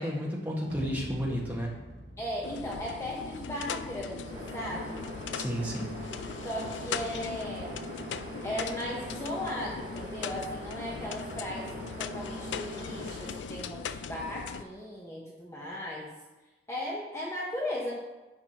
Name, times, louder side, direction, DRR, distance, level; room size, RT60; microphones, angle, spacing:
voice 1, 0.0-1.8 5.3-5.9, equal, 10° right, -4 dB, 1.7 m, -32 dB
sound 1, 0.7-4.7, equal, 85° right, 2.1 m, -47 dB
voice 2, 2.2-5.1 6.4-7.9 8.4-11.7 12.0-16.1 16.7-18.0, left 1 dB, 15° left, -4 dB, 1.0 m, -37 dB
sound 2, 2.4-14.6, left 6 dB, 85° left, 0.4 m, -39 dB
sound 3, 4.2-13.5, right 1 dB, 50° right, 1.1 m, -42 dB
10.5 x 7.3 x 3.0 m, 1.1 s
head